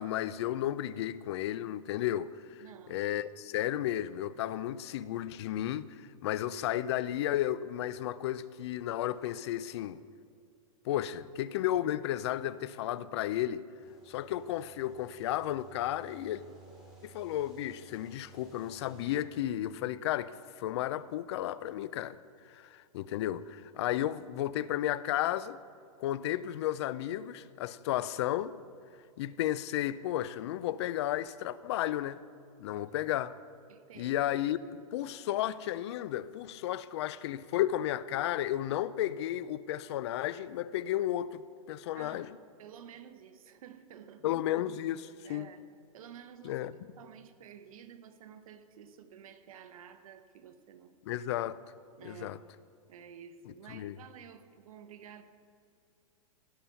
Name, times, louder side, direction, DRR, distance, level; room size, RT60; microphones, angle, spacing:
voice 1, 0.0-2.6 2.9-10.0 10.9-13.6 14.1-16.4 17.0-22.2 22.5-25.6 26.0-28.6 29.2-32.2 32.6-33.3 34.0-42.4 44.2-45.5 46.4-46.7 51.1-51.6 52.0-52.4 53.7-53.9, left 12 dB, 50° left, 0.4 m, -33 dB
voice 2, 2.6-3.1 32.7-32.9 33.7-34.2 41.9-44.4 45.2-45.6 45.9-46.7 47.0-51.0 52.0-52.4 52.9-55.2, right 8 dB, 70° right, 0.9 m, -51 dB
sound 1, 13.8-19.1, right 3 dB, 5° right, 2.4 m, -56 dB
17.0 x 6.0 x 5.6 m
supercardioid pair, 155°, 18 cm